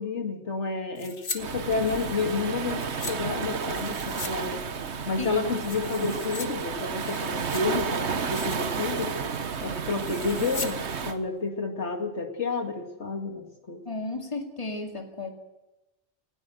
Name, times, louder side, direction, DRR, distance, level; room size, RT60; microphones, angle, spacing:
voice 1, 0.0-4.6 5.1-9.1 9.6-13.8, left 4 dB, 75° left, 4 dB, 2.5 m, -30 dB
slinky Copy, 1.0-1.4 1.7-3.2 3.7-4.4 4.6-4.7 5.2-6.5 6.8-7.8 8.2-8.7 9.0-9.3 10.0-10.7 11.0-11.1, left 3 dB, 50° left, 1.7 m, -39 dB
Waves surf, 1.4-11.2, right 6 dB, 70° right, 1.4 m, -32 dB
voice 2, 13.9-15.3, left 3 dB, 25° left, 3 dB, 2.3 m, -33 dB
19.5 x 18.0 x 7.8 m, 0.98 s
omnidirectional pair, 1.2 m